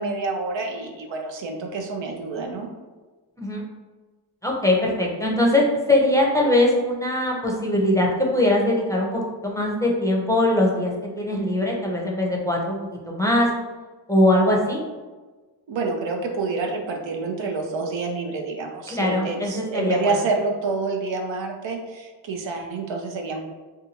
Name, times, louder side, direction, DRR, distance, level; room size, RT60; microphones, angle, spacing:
voice 1, 0.0-2.7 15.7-23.4, right 3 dB, 80° right, 2 dB, 0.5 m, -28 dB
voice 2, 4.4-13.5 14.1-14.8 18.9-20.2, left 1 dB, 5° left, -2 dB, 0.6 m, -21 dB
2.7 x 2.3 x 2.8 m, 1.3 s
cardioid pair, 55°, 44 cm